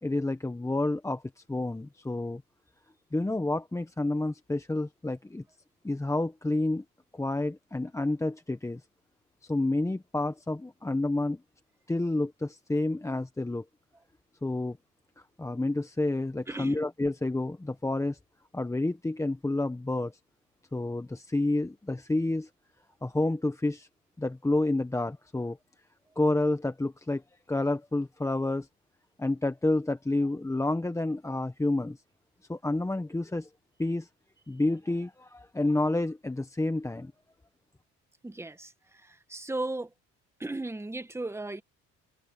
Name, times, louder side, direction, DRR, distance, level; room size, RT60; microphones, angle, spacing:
voice 1, 0.0-2.4 3.1-5.4 5.8-6.8 7.1-8.8 9.4-11.4 11.9-13.6 14.4-14.8 15.4-18.2 18.5-20.1 20.7-22.5 23.0-23.9 24.2-25.6 26.2-27.2 27.5-28.7 29.2-32.0 32.5-33.5 33.8-34.1 34.5-37.1, left 2 dB, 10° left, 1.1 m, -29 dB
voice 2, 16.5-16.8 38.2-38.7 39.3-39.9 40.4-41.6, right 2 dB, 10° right, 1.5 m, -35 dB
cardioid pair, 95°, 30 cm